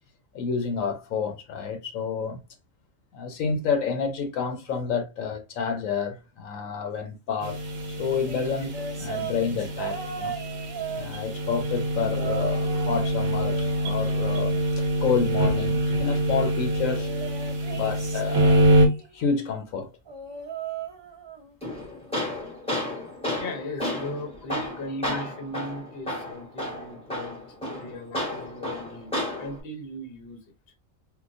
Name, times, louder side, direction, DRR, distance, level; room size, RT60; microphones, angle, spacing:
voice 1, 0.3-2.4 3.1-7.6 7.9-8.7 9.0-10.3 10.9-14.6 15.0-17.1 17.7-18.7 19.1-19.9 25.1-25.3, left 6 dB, 80° left, 1.1 m, -29 dB
sound 1, 7.4-18.9, right 1 dB, 70° right, 1.2 m, -25 dB
sound 2, 8.3-11.6 12.1-13.1 13.4-14.9 17.0-19.2 20.1-21.5 21.9-22.2 23.4-23.5, right 6 dB, 25° right, 0.7 m, -37 dB
Tools, 21.6-29.6, left 1 dB, 5° left, 1.1 m, -32 dB
voice 2, 23.4-27.4 27.7-29.1 29.4-30.4, left 1 dB, 50° left, 1.0 m, -37 dB
3.7 x 2.5 x 2.5 m
omnidirectional pair, 1.4 m